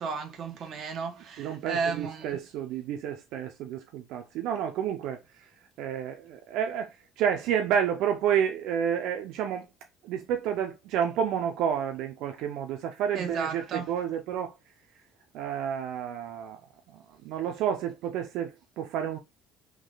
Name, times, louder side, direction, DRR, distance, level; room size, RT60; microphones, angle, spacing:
voice 1, 0.0-2.3 13.1-13.9, right 5 dB, 45° right, 1.3 m, -33 dB
voice 2, 1.4-5.5 5.8-9.7 10.0-14.5 15.3-16.6 16.9-19.2, right 8 dB, 75° right, 0.7 m, -30 dB
3.7 x 3.1 x 3.9 m
cardioid pair, 145°, 0 cm